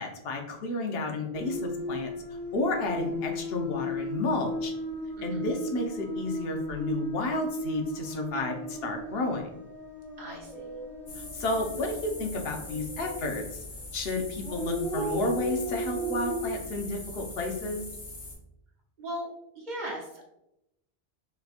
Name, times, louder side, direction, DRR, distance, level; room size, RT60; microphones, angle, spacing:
voice 1, 0.0-2.1 2.5-4.7 5.2-9.5 11.2-13.6 13.9-17.8, left 2 dB, 75° left, 2 dB, 0.9 m, -31 dB
sound 1, 1.3-13.3 14.4-16.5, left 1 dB, 5° left, 0.6 m, -36 dB
voice 2, 5.2-5.5 10.2-10.7 19.0-19.3 19.5-20.3, equal, 50° right, -2 dB, 0.9 m, -38 dB
sound 2, 11.1-18.3, left 2 dB, 45° left, 1.0 m, -42 dB
4.0 x 2.8 x 2.4 m, 0.84 s
omnidirectional pair, 1.0 m